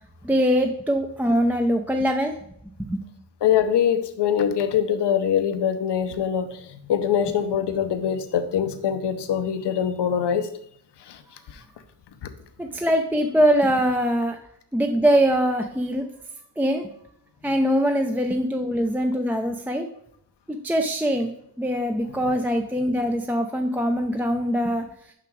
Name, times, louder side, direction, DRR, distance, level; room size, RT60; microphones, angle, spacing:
voice 1, 0.2-2.3 2.8-3.0 12.6-14.4 14.7-16.0 16.6-16.9 17.4-19.9 20.5-21.3 21.6-24.9, equal, 5° right, 4 dB, 0.4 m, -22 dB
voice 2, 3.4-10.5 11.0-11.2 11.5-11.6 12.2-12.3, left 8 dB, 85° left, 10 dB, 0.9 m, -23 dB
6.0 x 6.0 x 4.6 m, 0.70 s
wide cardioid pair, 155°, 40 cm